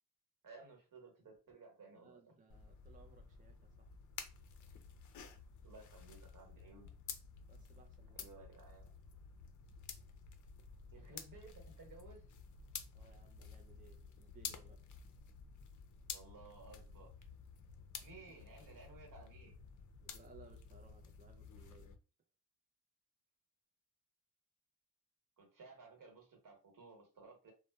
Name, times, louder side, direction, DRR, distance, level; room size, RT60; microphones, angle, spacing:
voice 1, 0.4-2.4 5.6-6.9 8.1-8.9 10.9-12.3 16.1-17.1 18.0-19.6 25.4-27.5, right 3 dB, 55° right, 1.2 m, -57 dB
voice 2, 1.9-3.9 7.5-8.3 12.9-14.9 20.0-22.0, right 5 dB, 20° right, 0.4 m, -63 dB
sound 1, 2.5-21.9, left 6 dB, 50° left, 0.5 m, -52 dB
2.6 x 2.1 x 2.2 m
supercardioid pair, 60°, 39 cm